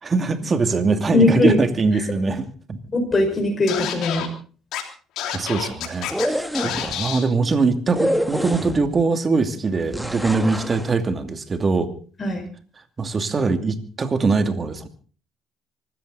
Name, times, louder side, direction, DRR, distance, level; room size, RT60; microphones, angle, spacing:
voice 1, 0.0-2.8 5.3-11.9 13.0-14.9, right 4 dB, 35° right, 8 dB, 2.6 m, -22 dB
voice 2, 1.1-1.6 2.9-4.3 12.2-12.4, left 2 dB, 30° left, 2 dB, 5.5 m, -19 dB
Scratching (performance technique), 3.7-4.3 4.7-4.8 5.2-6.3 6.5-7.2, left 10 dB, 70° left, 3.2 m, -28 dB
sound 1, 6.0-7.0 7.9-9.0 9.9-10.9, equal, ahead, 2.0 m, -26 dB
24.5 x 13.5 x 4.1 m, 0.40 s
hypercardioid pair, 60°, 0 cm